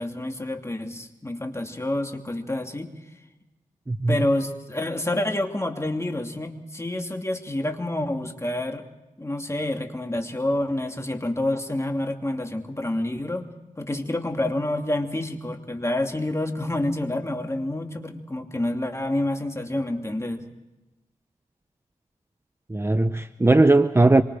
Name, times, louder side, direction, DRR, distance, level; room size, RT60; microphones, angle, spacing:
voice 1, 0.0-2.9 4.1-8.8 9.2-13.5 13.8-20.4, left 1 dB, 20° left, 2.8 m, -28 dB
voice 2, 3.9-4.2 22.7-24.2, right 2 dB, 15° right, 0.8 m, -18 dB
26.0 x 25.0 x 5.0 m
wide cardioid pair, 75°, 15 cm